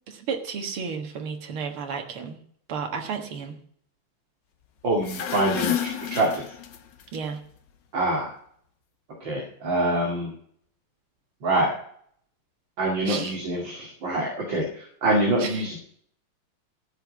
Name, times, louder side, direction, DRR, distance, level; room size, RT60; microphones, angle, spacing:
voice 1, 0.1-2.4 2.7-3.6 7.1-7.4 13.1-13.4 15.4-15.6, right 6 dB, 80° right, 3 dB, 2.4 m, -32 dB
voice 2, 4.8-6.4 7.9-8.3 9.2-10.3 11.4-11.7 12.8-15.8, right 1 dB, 60° right, -1 dB, 2.9 m, -25 dB
sound 1, 4.9-7.0, left 10 dB, 60° left, 1.6 m, -30 dB
14.5 x 5.6 x 8.1 m, 0.62 s
omnidirectional pair, 2.3 m